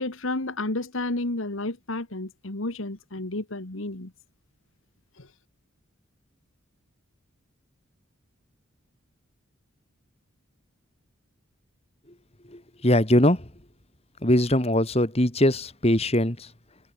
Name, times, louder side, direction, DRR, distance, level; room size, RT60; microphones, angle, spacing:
voice 1, 0.0-4.1 5.2-5.3, left 2 dB, 70° left, 2.0 m, -31 dB
voice 2, 12.5-13.5 14.2-16.5, left 1 dB, 30° left, 2.8 m, -22 dB
head